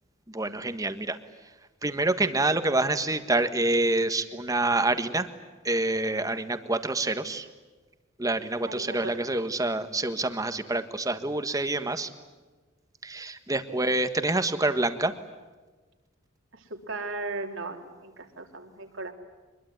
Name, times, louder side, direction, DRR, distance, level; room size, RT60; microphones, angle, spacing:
voice 1, 0.3-1.2 1.8-5.3 5.6-7.5 8.2-12.1 13.0-15.1, right 2 dB, 15° right, 9 dB, 1.5 m, -27 dB
voice 2, 8.7-9.5 13.7-13.9 16.5-19.1, right 3 dB, 70° right, 3 dB, 3.5 m, -37 dB
24.5 x 22.0 x 9.5 m, 1.3 s
head